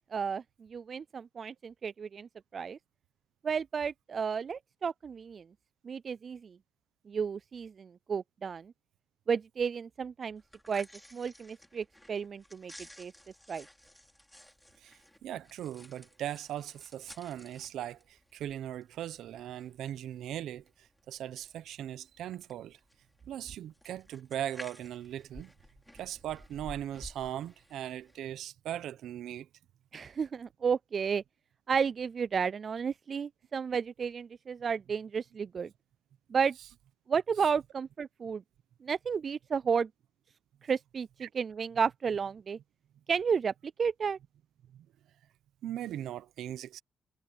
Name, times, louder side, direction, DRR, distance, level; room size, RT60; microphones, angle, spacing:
voice 1, 0.1-0.4 0.7-2.8 3.4-5.4 5.8-6.5 7.1-8.7 9.3-10.4 10.7-10.9 11.1-12.7 13.0-13.1 13.5-13.6 29.9-31.2 31.7-35.7 36.3-36.6 37.1-38.4 38.8-39.9 40.6-41.1 41.3-42.6 43.1-43.5 43.8-44.2, right 6 dB, 45° right, 0.3 m, -32 dB
sound 1, 10.4-28.2, left 1 dB, 5° left, 4.8 m, -54 dB
voice 2, 14.8-22.8 23.3-25.5 25.9-29.5 41.2-41.3 44.7-44.9 45.6-46.8, right 11 dB, 80° right, 1.0 m, -39 dB
cardioid pair, 90°, 0 cm